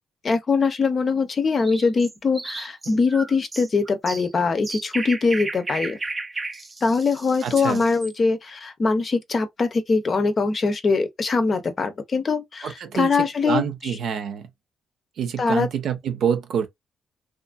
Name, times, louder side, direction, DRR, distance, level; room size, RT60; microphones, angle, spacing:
voice 1, 0.2-6.0 6.8-13.9 15.4-15.7, left 4 dB, 40° left, 0.6 m, -22 dB
sound 1, 1.6-8.1, right 3 dB, 25° right, 0.4 m, -34 dB
voice 2, 7.4-7.8 12.6-13.1 13.5-14.5 15.2-16.7, right 7 dB, 70° right, 0.7 m, -26 dB
2.8 x 2.5 x 2.3 m
cardioid pair, 90°, 0 cm